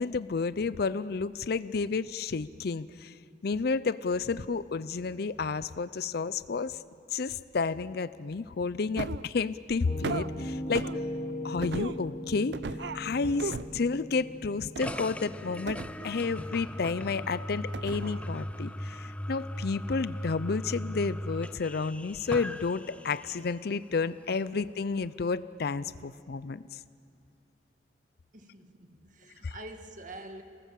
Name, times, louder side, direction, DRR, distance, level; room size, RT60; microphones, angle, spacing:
voice 1, 0.0-3.1 3.4-6.8 7.1-10.9 11.4-12.5 12.9-26.8 29.4-29.5, left 4 dB, 60° left, 15 dB, 0.5 m, -31 dB
sound 1, 9.0-9.3 10.0-10.3 10.7-11.0 11.6-12.0 12.5-13.0 13.4-13.8 14.8-15.1 15.7-16.5 17.7-18.2 18.6-18.7, right 4 dB, 70° right, 0.6 m, -36 dB
Piano, 9.8-17.7, equal, 30° left, 2.7 m, -40 dB
sound 2, 14.8-23.5, left 1 dB, 5° left, 0.5 m, -38 dB
voice 2, 28.3-30.4, right 2 dB, 45° right, 5 dB, 1.8 m, -46 dB
29.0 x 19.5 x 7.6 m, 2.3 s
head